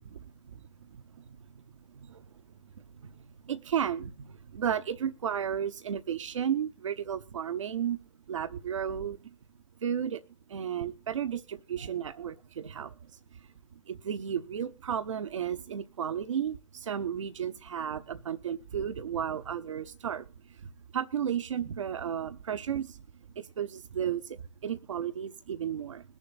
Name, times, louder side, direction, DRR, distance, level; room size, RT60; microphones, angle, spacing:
voice 1, 3.5-4.1 4.5-8.0 8.3-9.2 9.8-10.2 10.5-12.9 13.9-20.2 20.9-22.9 23.4-24.2 24.6-26.0, right 8 dB, 75° right, 12 dB, 0.7 m, -33 dB
21.5 x 7.2 x 4.0 m, 0.30 s
figure-of-eight pair, 105°, 16 cm